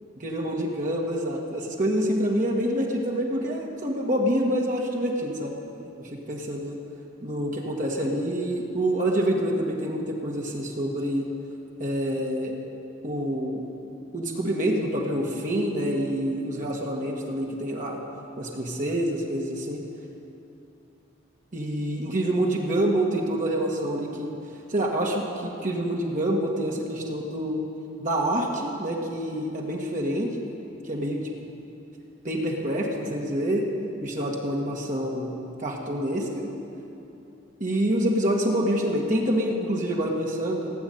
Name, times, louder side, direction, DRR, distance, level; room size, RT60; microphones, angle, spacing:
voice 1, 0.2-5.5 6.0-6.8 7.2-11.3 11.8-12.6 13.0-13.6 14.1-18.0 18.4-19.8 21.5-24.3 24.7-27.6 28.0-30.4 30.8-31.2 32.2-33.7 34.0-35.3 35.6-36.5 37.6-40.7, right 1 dB, 45° right, -1 dB, 1.7 m, -27 dB
17.5 x 8.1 x 9.3 m, 2.8 s
head